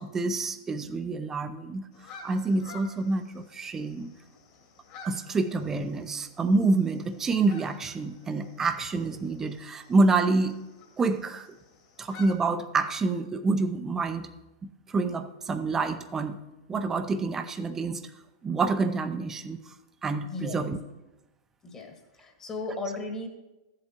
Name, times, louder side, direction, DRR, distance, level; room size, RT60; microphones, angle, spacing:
voice 1, 0.0-1.9 2.2-4.1 5.0-10.6 11.0-11.5 12.0-14.3 14.9-16.4 16.7-18.0 18.4-19.6 20.0-20.8, right 3 dB, 20° right, 9 dB, 0.6 m, -27 dB
sound 1, 1.9-12.3, left 3 dB, 50° left, 2.3 m, -51 dB
voice 2, 20.2-20.7 21.6-23.3, left 2 dB, 25° left, 4 dB, 1.4 m, -36 dB
13.5 x 7.7 x 2.9 m, 1.0 s
hypercardioid pair, 110°, 2 cm